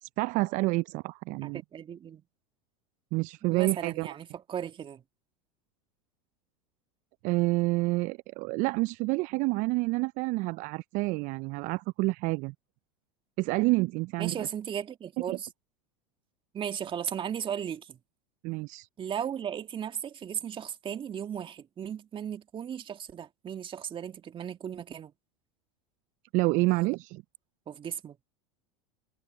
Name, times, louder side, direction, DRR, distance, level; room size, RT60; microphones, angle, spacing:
voice 1, 0.0-1.6 3.1-4.1 7.2-12.5 13.4-14.4 15.3-15.4 18.4-18.9 26.3-27.2, right 23 dB, 50° right, 0.4 m, -28 dB
voice 2, 1.4-2.2 3.5-5.0 14.2-15.5 16.5-18.0 19.0-25.1 27.7-28.2, right 8 dB, 30° right, 2.2 m, -36 dB
hypercardioid pair, 95°, 17 cm